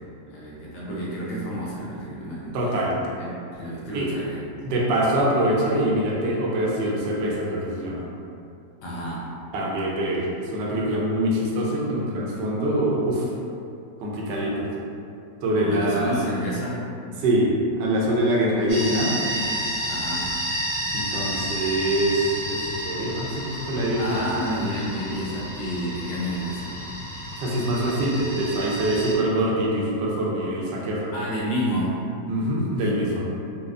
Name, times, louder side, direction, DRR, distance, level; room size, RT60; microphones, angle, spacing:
voice 1, 0.0-2.7 3.2-4.5 8.8-9.3 15.6-16.8 19.9-20.3 24.0-26.8 31.1-32.0 32.8-32.9, equal, 75° left, -6 dB, 1.2 m, -30 dB
voice 2, 2.5-2.9 3.9-4.1 4.6-8.0 9.5-13.3 14.0-14.7 15.4-16.2 17.2-19.2 20.9-22.6 22.8-24.2 27.4-31.1 32.3-33.3, right 1 dB, 75° right, -3 dB, 1.2 m, -24 dB
sound 1, 18.7-29.1, equal, 45° right, 1.0 m, -31 dB
4.2 x 2.3 x 2.4 m, 2.6 s
omnidirectional pair, 2.0 m